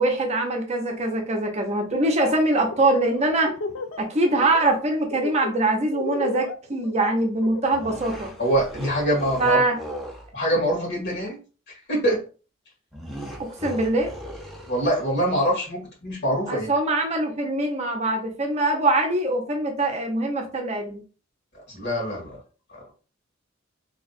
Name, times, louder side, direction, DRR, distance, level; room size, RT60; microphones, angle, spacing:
voice 1, 0.0-3.5 4.0-8.3 9.4-9.8 13.4-14.1 16.5-21.0, right 2 dB, 35° right, 2 dB, 0.7 m, -23 dB
Laughter, 1.9-2.3 2.6-4.1 4.4-4.8 5.1-7.9, left 3 dB, 75° left, 0.5 m, -32 dB
sound 1, 7.7-10.3 12.9-15.2, equal, ahead, 0.7 m, -38 dB
voice 2, 8.4-9.6 10.3-11.4 11.9-12.2 14.7-16.7 21.5-22.4 22.7-22.9, right 1 dB, 55° left, -2 dB, 2.0 m, -24 dB
3.5 x 2.4 x 4.0 m, 0.36 s
head